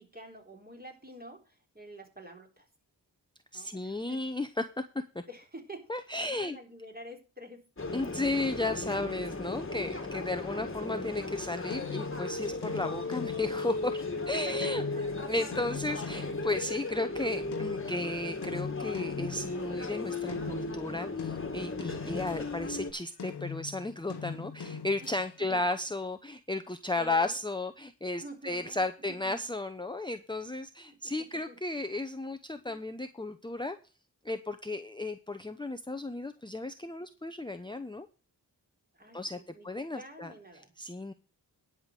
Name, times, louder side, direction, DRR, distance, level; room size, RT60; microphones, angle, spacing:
voice 1, 0.0-2.7 3.5-4.2 5.3-5.9 6.2-7.7 14.3-15.0 25.0-25.1 25.5-25.7 27.0-27.4 28.2-28.8 29.1-29.5 30.9-31.1 31.5-31.6 32.7-32.8 38.9-40.7, right 1 dB, 25° right, 1 dB, 3.7 m, -48 dB
voice 2, 3.5-4.7 5.1-5.2 5.9-6.6 7.9-14.8 15.1-33.8 34.2-38.1 39.1-40.3 40.8-41.1, left 2 dB, 10° left, 8 dB, 0.8 m, -34 dB
sound 1, 7.8-22.9, left 3 dB, 30° left, 1.7 m, -36 dB
sound 2, 11.7-17.0 17.5-22.8 23.2-25.6, left 6 dB, 80° left, 1.2 m, -42 dB
10.5 x 5.1 x 7.5 m, 0.34 s
cardioid pair, 60°, 39 cm